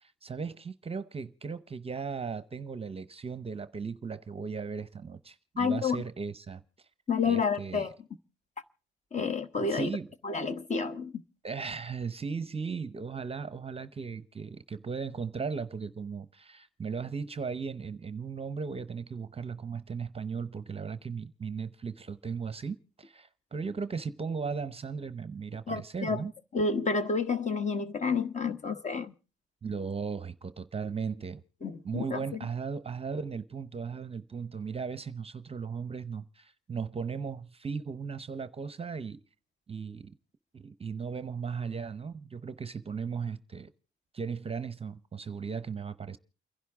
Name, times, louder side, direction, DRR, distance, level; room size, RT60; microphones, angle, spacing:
voice 1, 0.0-6.6 7.2-7.9 9.2-9.3 9.7-10.1 11.4-26.3 29.6-31.4 31.8-39.2 39.7-40.1 40.5-43.7 44.1-46.2, right 5 dB, 30° right, 0.7 m, -37 dB
voice 2, 5.6-6.0 7.1-7.9 9.1-9.9 10.2-11.1 25.7-26.2 26.5-29.1 31.6-32.4, left 5 dB, 35° left, 1.2 m, -30 dB
29.0 x 11.0 x 3.5 m
cardioid pair, 95°, 21 cm